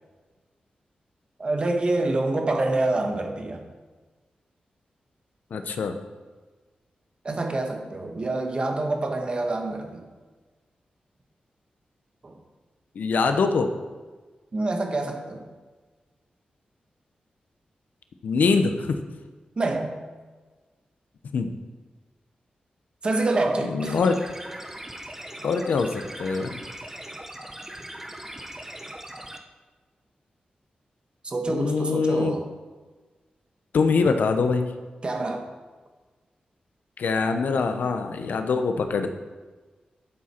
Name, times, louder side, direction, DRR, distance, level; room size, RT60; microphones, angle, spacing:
voice 1, 1.4-3.6 7.2-10.0 12.2-12.4 14.5-15.4 19.6-19.9 23.0-24.0 31.2-32.4 35.0-35.4, right 2 dB, 35° right, 4 dB, 1.4 m, -26 dB
voice 2, 5.5-5.9 13.0-13.7 18.2-19.0 21.3-21.5 23.7-24.2 25.4-26.6 31.5-32.4 33.7-34.7 37.0-39.1, left 4 dB, 80° left, 7 dB, 0.9 m, -23 dB
sound 1, 23.8-29.4, right 1 dB, 10° right, 0.9 m, -40 dB
12.0 x 7.6 x 4.5 m, 1.3 s
wide cardioid pair, 125°, 3 cm